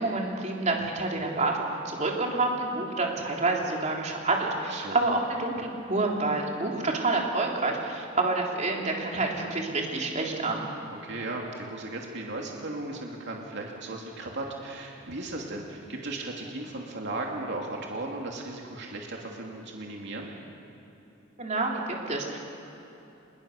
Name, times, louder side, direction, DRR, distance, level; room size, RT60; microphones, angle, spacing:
voice 1, 0.0-10.7 21.4-22.4, right 2 dB, 35° right, -1 dB, 3.5 m, -28 dB
voice 2, 4.7-5.0 11.0-20.3, right 2 dB, 60° right, 0 dB, 2.7 m, -36 dB
26.0 x 21.5 x 6.7 m, 3.0 s
head